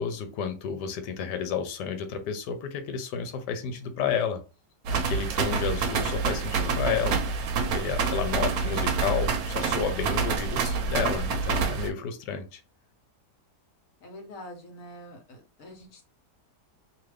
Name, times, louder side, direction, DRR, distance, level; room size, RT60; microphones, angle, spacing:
voice 1, 0.0-4.4 4.9-7.2 7.7-12.6, left 7 dB, 85° left, 1.2 m, -31 dB
sound 1, 4.8-11.9, right 5 dB, 70° right, 1.0 m, -27 dB
voice 2, 8.3-9.0 14.0-16.1, left 1 dB, 55° left, 1.2 m, -46 dB
2.8 x 2.5 x 3.2 m
omnidirectional pair, 1.8 m